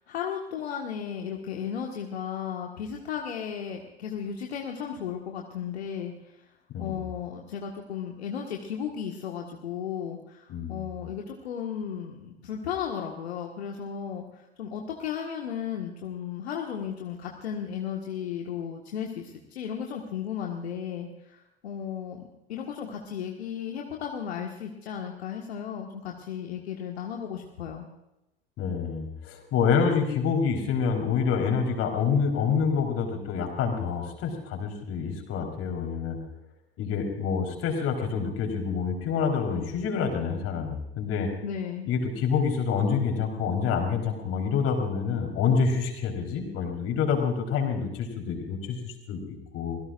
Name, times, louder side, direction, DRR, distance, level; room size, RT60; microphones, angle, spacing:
voice 1, 0.1-6.1 6.8-27.9 41.4-41.9, left 8 dB, 75° left, 1 dB, 1.7 m, -35 dB
voice 2, 10.5-10.8 28.6-36.2 36.8-41.3 41.9-49.8, left 6 dB, 45° left, 2 dB, 4.2 m, -27 dB
26.5 x 16.5 x 2.5 m, 0.88 s
figure-of-eight pair, 80°, 33 cm